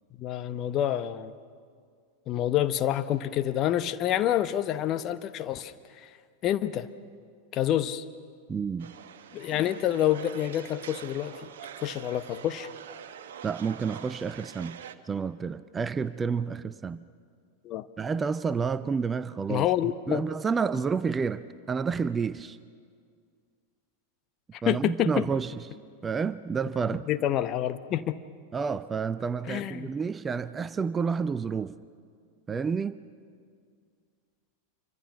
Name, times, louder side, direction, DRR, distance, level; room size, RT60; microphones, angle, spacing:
voice 1, 0.2-1.3 2.3-6.1 6.4-6.9 7.5-8.0 9.3-11.5 11.8-12.7 17.6-17.9 19.5-20.3 24.5-25.2 27.1-28.2 29.5-29.9, left 12 dB, 35° left, 11 dB, 0.9 m, -28 dB
voice 2, 8.5-8.9 13.4-14.7 15.1-17.0 18.0-19.7 20.1-22.6 24.6-25.5 26.0-27.1 28.5-31.7 32.5-33.0, right 5 dB, 15° right, 16 dB, 0.5 m, -29 dB
sound 1, 8.8-15.0, right 8 dB, 55° right, 1.1 m, -45 dB
27.5 x 24.5 x 5.9 m, 2.1 s
figure-of-eight pair, 90°, 0 cm